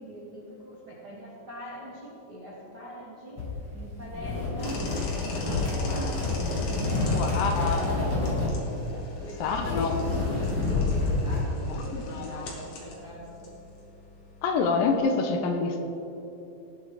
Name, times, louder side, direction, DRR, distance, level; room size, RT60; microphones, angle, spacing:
voice 1, 0.0-3.4 3.7-6.2 6.5-10.4 10.7-13.5, equal, 55° right, -5 dB, 1.1 m, -42 dB
sound 1, 3.4-11.4, left 3 dB, 30° left, 2.8 m, -28 dB
sound 2, 4.6-15.0, left 3 dB, 50° left, 2.2 m, -44 dB
voice 2, 7.1-8.2 9.4-10.0 11.7-12.5 14.4-15.9, left 4 dB, 80° left, 4 dB, 2.6 m, -27 dB
18.0 x 7.3 x 3.9 m, 2.9 s
omnidirectional pair, 4.1 m